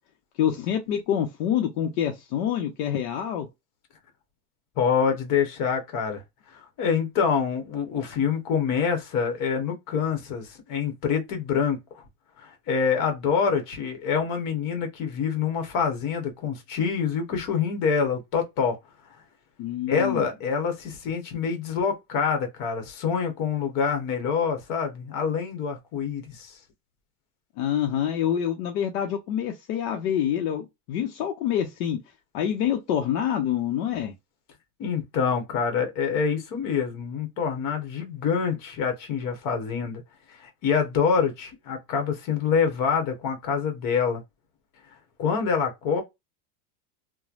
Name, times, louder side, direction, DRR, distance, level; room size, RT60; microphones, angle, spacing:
voice 1, 0.4-3.5 19.6-20.3 27.6-32.0 32.3-34.1, left 9 dB, 65° left, 0.8 m, -26 dB
voice 2, 4.8-6.2 6.5-12.0 12.4-18.8 19.9-26.6 34.8-40.0 40.3-44.2 45.2-46.0, left 6 dB, 45° left, 1.1 m, -26 dB
3.1 x 2.2 x 2.5 m
supercardioid pair, 145°, 46 cm